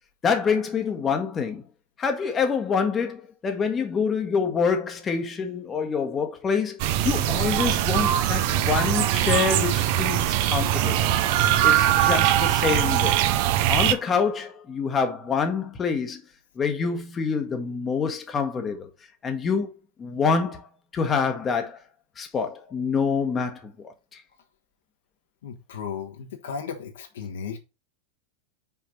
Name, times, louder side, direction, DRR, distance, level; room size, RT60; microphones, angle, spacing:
voice 1, 0.2-1.6 2.0-6.8 7.0-11.0 11.6-13.2 13.7-16.2 16.6-18.9 19.2-19.7 20.0-20.7 20.9-21.8 22.2-24.2, left 5 dB, 20° left, 1.2 m, -26 dB
sound 1, 6.8-13.9, right 12 dB, 45° right, 0.6 m, -22 dB
voice 2, 25.4-27.6, left 6 dB, 60° left, 1.4 m, -35 dB
5.8 x 4.8 x 4.4 m
figure-of-eight pair, 90°, 0 cm